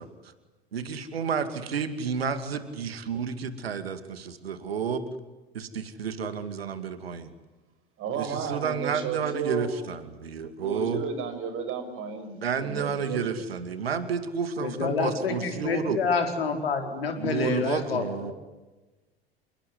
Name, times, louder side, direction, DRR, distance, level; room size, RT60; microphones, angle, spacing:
voice 1, 0.7-5.1 5.5-7.3 8.1-11.0 12.3-16.0 17.2-18.3, right 6 dB, 75° right, 11 dB, 2.5 m, -31 dB
voice 2, 8.0-9.7 10.6-13.2, right 5 dB, 40° right, 9 dB, 6.3 m, -33 dB
voice 3, 14.6-18.3, left 5 dB, 70° left, 5 dB, 4.7 m, -28 dB
29.0 x 20.0 x 9.6 m, 1.1 s
figure-of-eight pair, 75°, 31 cm